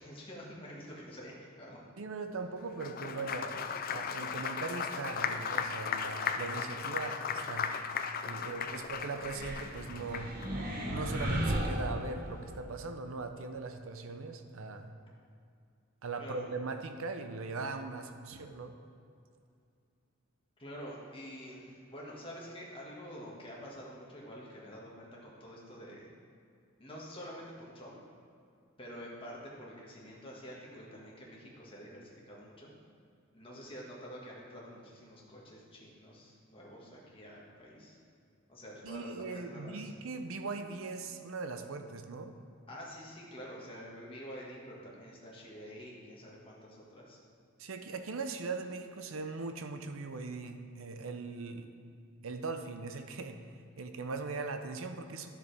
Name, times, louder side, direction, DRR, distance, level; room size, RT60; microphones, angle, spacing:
voice 1, 0.0-1.8 8.4-8.8 16.2-16.4 20.6-26.1 26.8-28.0 28.8-32.7 33.3-38.0 38.5-39.9 42.7-47.2, equal, 25° left, -4 dB, 1.7 m, -48 dB
voice 2, 2.0-7.7 8.3-10.3 10.9-14.9 16.0-18.7 38.8-42.4 47.6-51.7 52.2-53.4 53.8-55.3, right 3 dB, 65° right, 7 dB, 0.6 m, -40 dB
Applause, 2.7-10.5, left 6 dB, 40° left, 0.4 m, -36 dB
sound 1, 9.2-12.5, equal, 45° right, 1.4 m, -35 dB
12.0 x 6.8 x 3.4 m, 2.4 s
head